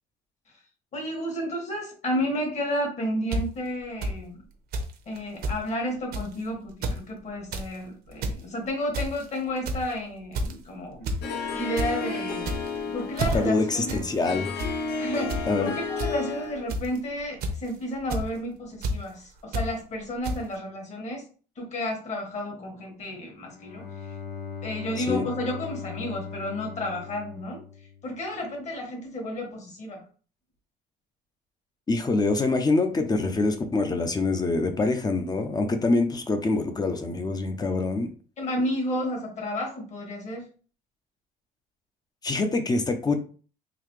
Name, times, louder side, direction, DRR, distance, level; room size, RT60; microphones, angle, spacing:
voice 1, 0.9-4.4 5.1-11.1 11.5-12.6 12.9-14.0 15.0-21.2 21.6-23.9 24.6-27.6 28.0-30.0 38.4-40.5, left 1 dB, 40° left, 0 dB, 1.7 m, -31 dB
sound 1, 3.3-3.4 4.0-4.1 4.7-4.9 5.2-5.3 5.4-5.6 6.1-6.3 6.7-7.0 7.3-7.7 8.1-8.4 8.9-9.2 9.7-9.9 10.3-10.6 11.1-11.2 11.5-11.9 12.4-12.8 13.2-13.4 13.9-14.0 14.3-14.7 15.3-15.4 16.0-16.1 16.7-17.0 17.4-17.7 18.1-18.3 18.8-18.9 19.5-19.7 20.2-20.4, right 1 dB, 65° right, 0.8 m, -28 dB
Harp, 11.2-16.7, left 4 dB, 75° left, 0.7 m, -32 dB
voice 2, 13.3-14.5 15.5-15.7 25.0-25.2 31.9-38.1 42.2-43.1, left 3 dB, 25° left, 7 dB, 0.6 m, -25 dB
Bowed string instrument, 23.4-28.4, left 7 dB, 60° left, 1.1 m, -39 dB
3.9 x 2.7 x 3.2 m, 0.39 s
cardioid pair, 110°, 17 cm